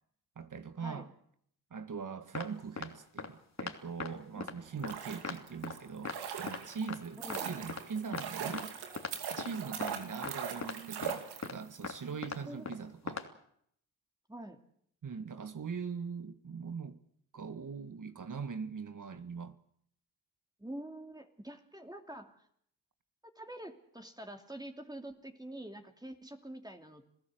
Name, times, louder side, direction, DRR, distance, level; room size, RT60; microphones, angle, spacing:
voice 1, 0.3-1.1 1.7-8.8 9.3-13.2 15.0-17.0 17.3-19.6, right 5 dB, 55° right, 1.8 m, -41 dB
sound 1, 2.3-2.5 2.8-2.9 3.2-3.3 3.6-3.7 4.0-4.1 4.4-4.5 4.8-4.9 5.2-5.4 5.6-5.7 6.0-6.2 6.5-6.6 6.9-7.0 7.3-7.4 7.7-7.8 8.1-8.2 8.5-8.6 9.0-9.1 9.4-9.5 9.8-9.9 10.2-10.3 10.6-10.7 11.0-11.1 11.4-11.5 11.8-12.0 12.2-12.4 12.7-12.8 13.1-13.2, left 4 dB, 45° left, 3.1 m, -39 dB
sound 2, 4.6-11.8 12.1-12.2, right 7 dB, 90° right, 2.5 m, -41 dB
voice 2, 7.2-7.5 8.4-8.6 12.5-12.7 14.3-14.6 20.6-22.4 23.2-27.1, right 1 dB, 10° right, 2.8 m, -46 dB
28.0 x 16.0 x 7.9 m
supercardioid pair, 40°, 38 cm